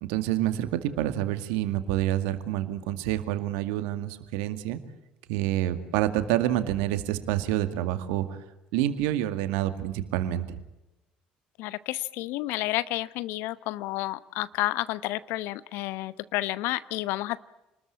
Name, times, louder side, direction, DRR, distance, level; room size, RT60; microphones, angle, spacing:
voice 1, 0.0-4.8 5.3-8.3 8.7-10.6, right 13 dB, 75° right, 10 dB, 2.2 m, -28 dB
voice 2, 11.6-17.4, left 17 dB, 70° left, 17 dB, 1.0 m, -30 dB
29.0 x 20.5 x 8.6 m, 0.98 s
hypercardioid pair, 60°, 4 cm